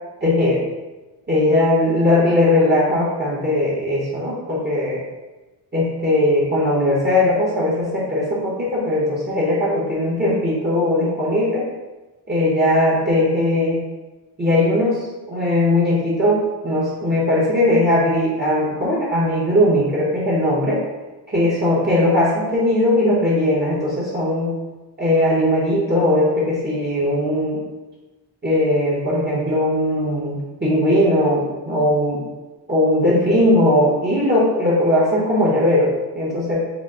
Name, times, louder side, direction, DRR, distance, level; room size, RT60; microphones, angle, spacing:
voice 1, 0.2-0.6 1.3-5.0 5.7-11.6 12.3-13.8 14.4-20.8 21.3-24.5 25.0-27.6 28.4-32.2 32.7-36.6, left 1 dB, 25° right, -7 dB, 0.8 m, -19 dB
5.0 x 2.0 x 4.6 m, 1.1 s
wide cardioid pair, 175°, 43 cm